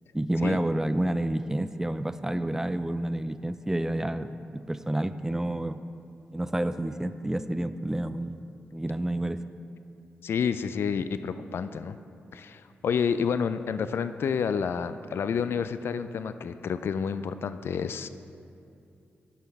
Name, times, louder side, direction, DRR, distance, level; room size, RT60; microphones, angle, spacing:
voice 1, 0.1-5.8 6.3-8.4 8.7-9.4, right 1 dB, 10° right, 12 dB, 0.4 m, -29 dB
voice 2, 10.2-12.0 12.3-18.1, left 6 dB, 65° left, 12 dB, 0.3 m, -29 dB
11.5 x 5.6 x 4.7 m, 2.6 s
cardioid pair, 65°, 4 cm